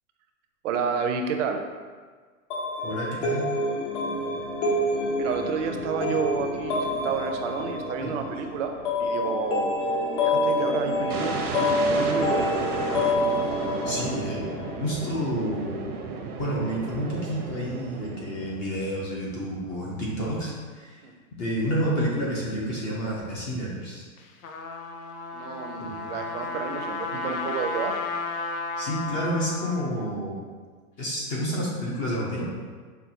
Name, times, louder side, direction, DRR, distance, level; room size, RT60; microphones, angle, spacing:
voice 1, 0.6-1.6 5.2-8.7 9.0-9.7 10.2-12.8 21.0-21.1 25.3-27.9, right 6 dB, 55° right, 5 dB, 0.5 m, -30 dB
sound 1, 2.5-15.1, left 1 dB, 55° left, 0.9 m, -27 dB
voice 2, 2.8-3.5 8.0-8.1 13.8-14.4 14.8-15.9 16.4-21.0 21.4-24.0 25.8-25.9 28.8-30.4 31.0-32.5, equal, 25° left, -4 dB, 0.4 m, -29 dB
sound 2, 11.1-19.0, right 4 dB, 85° right, 0.8 m, -34 dB
Trumpet, 24.2-30.1, left 3 dB, 70° left, 0.6 m, -33 dB
5.7 x 2.3 x 2.7 m, 1.5 s
hypercardioid pair, 140°, 44 cm